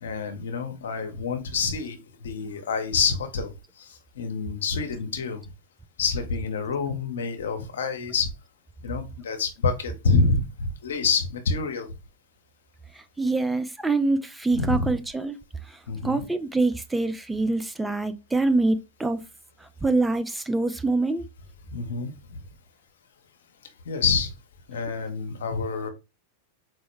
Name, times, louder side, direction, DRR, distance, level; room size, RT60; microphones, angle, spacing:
voice 1, 0.0-5.4 6.0-8.3 8.8-11.9 14.6-14.9 15.9-16.2 21.7-22.4 23.8-24.3 24.7-25.9, left 4 dB, 80° left, 0.7 m, -27 dB
voice 2, 13.0-15.4 15.7-19.2 19.6-21.2, right 3 dB, 10° right, 0.4 m, -25 dB
4.5 x 2.1 x 3.1 m
hypercardioid pair, 105°, 0 cm